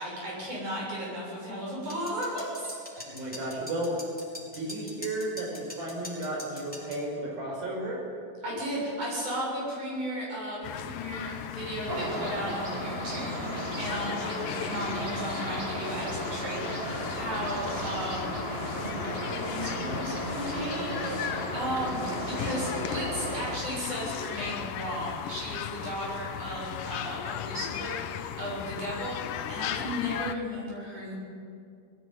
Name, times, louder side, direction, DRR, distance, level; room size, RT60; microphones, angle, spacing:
voice 1, 0.0-2.8 3.2-3.3 8.4-18.4 18.7-31.2, equal, 55° right, -4 dB, 8.9 m, -35 dB
sound 1, 1.9-7.0, left 1 dB, ahead, 4.1 m, -43 dB
voice 2, 3.0-3.9 4.5-8.0, right 1 dB, 85° right, -1 dB, 7.1 m, -33 dB
sound 2, 10.6-30.4, left 10 dB, 75° left, 2.3 m, -37 dB
sound 3, 11.9-23.6, right 1 dB, 25° right, 1.5 m, -35 dB
20.0 x 15.5 x 9.2 m, 2.3 s
omnidirectional pair, 4.1 m